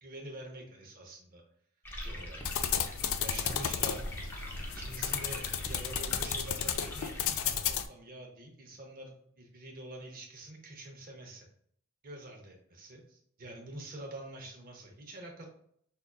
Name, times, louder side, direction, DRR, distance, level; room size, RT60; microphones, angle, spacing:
voice 1, 0.0-1.4 2.0-2.4 3.1-4.1 4.7-11.5 12.0-15.5, right 1 dB, 40° right, 1 dB, 0.7 m, -46 dB
sound 1, 1.8-7.7, equal, 10° left, 0.6 m, -42 dB
sound 2, 2.5-7.9, left 9 dB, 60° left, 0.3 m, -33 dB
5.4 x 2.4 x 2.3 m, 0.64 s
head